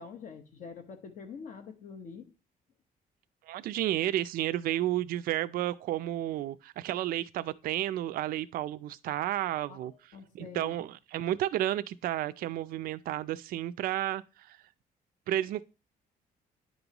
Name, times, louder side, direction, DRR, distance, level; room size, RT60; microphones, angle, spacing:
voice 1, 0.0-2.3 9.7-10.8, left 5 dB, 55° left, 1.1 m, -45 dB
voice 2, 3.5-14.6 15.3-15.6, right 13 dB, 70° right, 0.4 m, -32 dB
10.0 x 5.3 x 2.9 m
cardioid pair, 160°, 16 cm